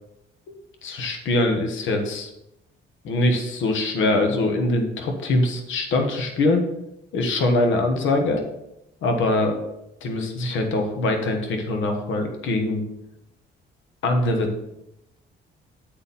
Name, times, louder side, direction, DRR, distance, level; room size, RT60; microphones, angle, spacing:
voice 1, 0.8-2.3 3.0-6.6 7.1-8.4 9.0-9.6 10.0-12.8 14.0-14.6, left 2 dB, 75° left, 4 dB, 1.3 m, -23 dB
7.8 x 4.3 x 5.4 m, 0.86 s
cardioid pair, 90°, 20 cm